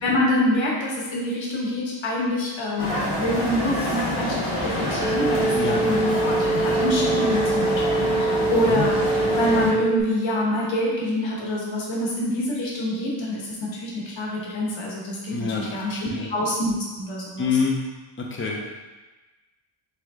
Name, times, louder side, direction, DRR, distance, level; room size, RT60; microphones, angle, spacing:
voice 1, 0.0-17.5, left 1 dB, 70° left, -4 dB, 1.2 m, -26 dB
sound 1, 2.8-9.7, left 1 dB, 50° left, 1.0 m, -27 dB
sound 2, 5.0-10.0, right 3 dB, 15° right, 0.9 m, -24 dB
voice 2, 15.3-16.3 17.4-17.8 18.2-18.6, left 5 dB, 25° left, -2 dB, 0.6 m, -26 dB
3.7 x 3.3 x 3.6 m, 1.2 s
wide cardioid pair, 180°, 47 cm